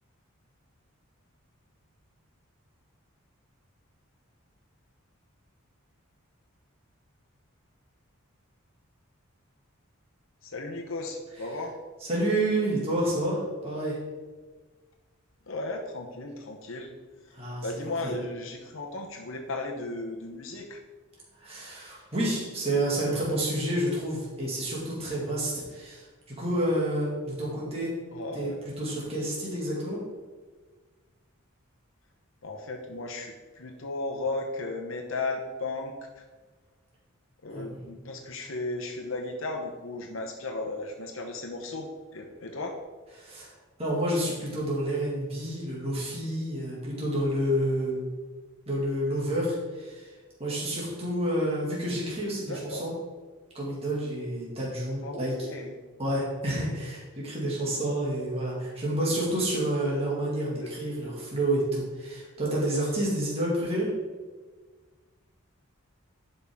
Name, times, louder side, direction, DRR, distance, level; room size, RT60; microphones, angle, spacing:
voice 1, 10.4-11.7 15.5-16.9 17.6-20.8 28.1-28.6 32.4-35.9 37.4-42.8 52.5-52.8 55.0-55.7 60.5-60.7, left 2 dB, 65° left, 2 dB, 0.9 m, -35 dB
voice 2, 12.1-14.0 17.3-17.7 18.0-18.2 21.4-27.9 28.3-30.0 37.5-37.8 43.2-43.5 43.8-48.1 48.7-50.1 50.4-52.9 53.5-55.3 56.0-63.9, right 1 dB, 30° right, -6 dB, 2.3 m, -29 dB
11.5 x 5.5 x 3.7 m, 1.4 s
head